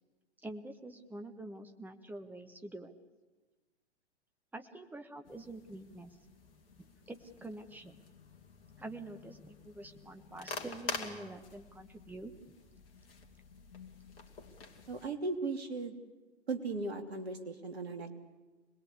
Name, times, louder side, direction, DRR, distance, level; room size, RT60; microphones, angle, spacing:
voice 1, 0.4-2.9 4.5-6.2 6.8-8.0 8.8-12.3, right 2 dB, 5° right, 6 dB, 1.4 m, -46 dB
sound 1, 5.3-15.1, left 4 dB, 55° left, 2.8 m, -47 dB
voice 2, 14.9-15.9 16.5-18.1, right 3 dB, 65° right, 6 dB, 2.9 m, -37 dB
26.0 x 20.5 x 8.4 m, 1.2 s
figure-of-eight pair, 105°, 34 cm